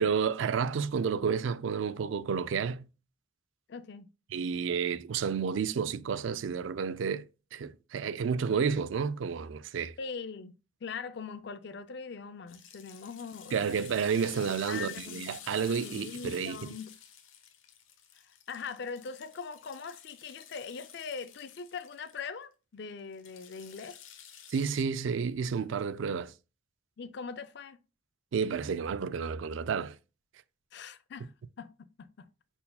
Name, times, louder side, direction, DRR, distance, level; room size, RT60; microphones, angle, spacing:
voice 1, 0.0-2.9 4.3-7.3 7.5-9.9 13.5-16.6 24.5-26.3 28.3-29.9 31.2-31.3, right 6 dB, 70° right, 0.4 m, -31 dB
voice 2, 3.7-4.1 10.0-10.5 10.8-13.9 14.7-15.5 15.8-16.9 18.5-24.0 27.0-27.8 30.7-31.3 31.6-32.3, left 5 dB, 55° left, 0.4 m, -41 dB
sound 1, 12.5-22.3 23.1-24.8, left 9 dB, 80° left, 0.9 m, -50 dB
5.4 x 4.4 x 2.2 m
head